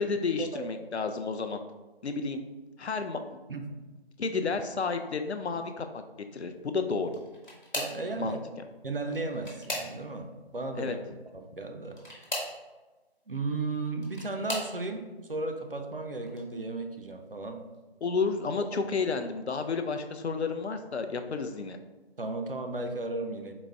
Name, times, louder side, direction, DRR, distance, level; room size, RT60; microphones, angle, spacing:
voice 1, 0.0-1.6 2.0-2.4 2.8-3.2 4.2-6.0 6.3-7.1 8.2-8.4 10.8-11.0 18.0-21.8, left 4 dB, 90° left, 7 dB, 0.5 m, -31 dB
sound 1, 7.0-8.1 9.0-10.3 11.9-12.6 13.7-14.8 15.5-15.9 16.3-16.4 17.7-17.8, equal, 45° left, 1.1 m, -37 dB
voice 2, 7.7-8.4 8.8-11.0 11.3-12.0 13.3-17.6 22.2-23.5, right 3 dB, 60° right, 5 dB, 0.5 m, -35 dB
4.0 x 2.0 x 3.4 m, 1.2 s
figure-of-eight pair, 180°, 32 cm